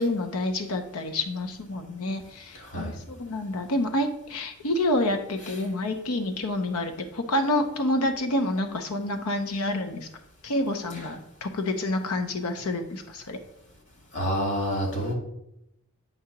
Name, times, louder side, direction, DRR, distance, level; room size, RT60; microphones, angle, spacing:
voice 1, 0.0-10.1 10.4-13.4, left 1 dB, 80° left, 6 dB, 0.7 m, -28 dB
voice 2, 2.6-3.0 14.1-15.1, equal, 60° left, 0 dB, 2.0 m, -28 dB
8.0 x 2.8 x 5.8 m, 0.81 s
head